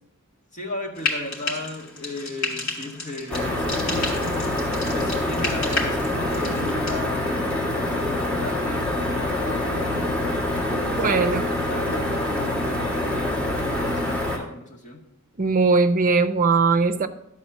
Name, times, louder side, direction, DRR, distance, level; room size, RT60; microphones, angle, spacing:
voice 1, 0.5-4.2 4.9-10.4 10.9-13.4 13.7-15.0, left 1 dB, 35° left, -2 dB, 1.9 m, -36 dB
Frying (food), 0.9-7.0, left 3 dB, 65° left, 2.8 m, -32 dB
sound 1, 3.3-14.4, left 1 dB, 5° left, 1.8 m, -25 dB
voice 2, 10.9-11.5 15.4-17.1, right 4 dB, 40° right, 9 dB, 0.6 m, -20 dB
12.0 x 4.3 x 7.3 m, 0.80 s
head